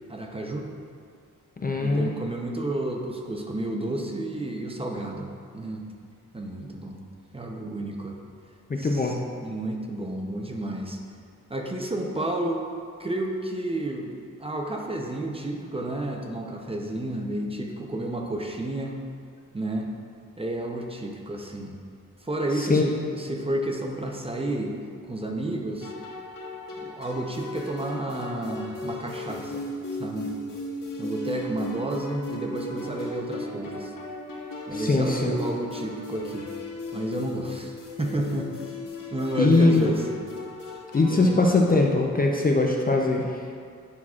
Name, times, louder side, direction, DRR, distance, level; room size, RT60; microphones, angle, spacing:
voice 1, 0.1-0.7 1.8-5.8 6.3-7.0 7.3-8.2 8.8-11.0 11.5-12.7 13.0-19.0 19.5-19.9 20.4-21.7 22.2-24.8 25.1-25.9 26.8-29.6 30.0-30.3 31.0-33.9 34.7-36.5 36.9-38.7 39.1-40.2 41.1-41.3, right 1 dB, 20° right, 1 dB, 0.6 m, -31 dB
voice 2, 1.6-2.1 8.7-9.2 22.6-22.8 34.7-35.4 39.4-39.9 40.9-43.5, left 3 dB, 30° left, 0 dB, 0.5 m, -21 dB
sound 1, 25.8-41.7, left 2 dB, 90° left, 1.1 m, -37 dB
9.6 x 5.9 x 2.4 m, 2.3 s
wide cardioid pair, 115°, 32 cm